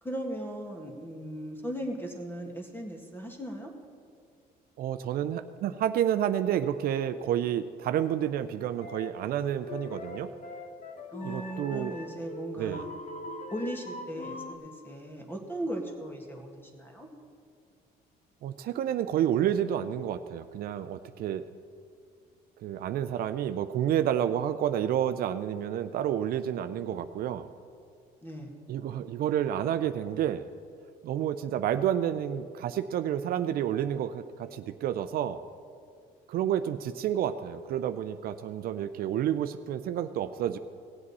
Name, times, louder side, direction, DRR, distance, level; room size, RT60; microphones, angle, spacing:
voice 1, 0.0-3.7 11.1-12.9 13.5-17.1 28.2-28.5, right 1 dB, 15° left, 2 dB, 1.8 m, -37 dB
voice 2, 4.8-10.3 11.2-11.9 12.6-12.8 18.4-21.5 22.6-27.5 28.7-30.5 31.0-35.4 36.3-40.6, right 10 dB, 65° right, 11 dB, 0.5 m, -30 dB
sound 1, 8.8-9.2 9.7-14.6, left 2 dB, 45° left, 0.9 m, -42 dB
17.5 x 7.7 x 4.2 m, 2.2 s
cardioid pair, 110°, 17 cm